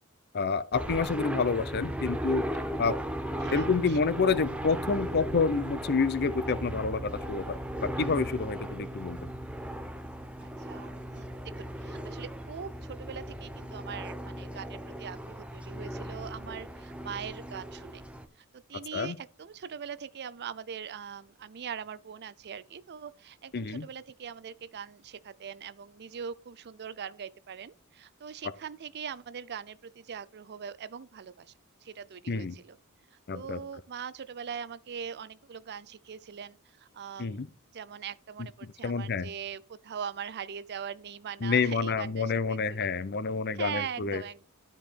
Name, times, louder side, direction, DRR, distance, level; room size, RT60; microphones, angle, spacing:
voice 1, 0.3-2.4 2.8-2.9 3.5-9.3 18.9-19.2 23.5-23.9 32.3-32.6 33.3-33.6 37.2-37.5 38.8-39.3 41.4-44.2, left 4 dB, 45° left, 0.6 m, -28 dB
sound 1, 0.7-18.3, equal, 5° right, 0.9 m, -37 dB
voice 2, 3.4-4.0 10.4-11.3 11.6-18.0 18.7-31.5 31.8-32.8 33.3-37.4 37.7-42.9 43.5-44.5, right 7 dB, 50° right, 0.5 m, -41 dB
13.0 x 4.6 x 4.3 m
head